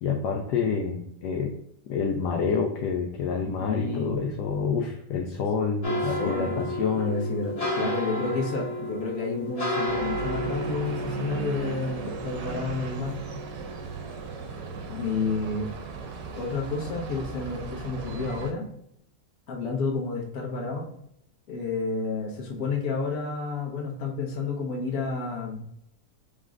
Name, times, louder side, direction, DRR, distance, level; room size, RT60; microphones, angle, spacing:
voice 1, 0.0-1.5 1.9-7.3, left 5 dB, 75° left, 1 dB, 1.1 m, -28 dB
voice 2, 3.6-4.2 5.8-13.2 14.9-15.7 16.4-18.6 19.5-20.9 21.5-25.6, left 4 dB, 55° left, -2 dB, 1.3 m, -30 dB
sound 1, 5.8-15.0 15.4-16.5 16.8-17.1 17.5-17.6, left 1 dB, 40° left, 0.5 m, -33 dB
sound 2, 9.9-18.5, right 5 dB, 80° right, 1.2 m, -37 dB
5.1 x 3.2 x 2.4 m, 0.75 s
omnidirectional pair, 1.9 m